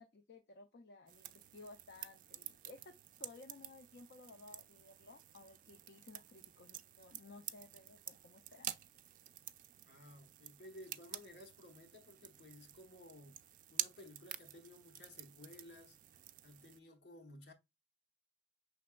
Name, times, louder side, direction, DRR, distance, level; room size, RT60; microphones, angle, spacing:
voice 1, 0.0-2.9 3.2-8.7, left 3 dB, 60° left, 0.5 m, -57 dB
sound 1, 1.1-16.8, right 13 dB, 50° right, 0.3 m, -50 dB
voice 2, 9.9-13.4 13.7-16.0 16.4-17.5, left 1 dB, 80° left, 1.0 m, -56 dB
5.8 x 3.4 x 2.2 m
head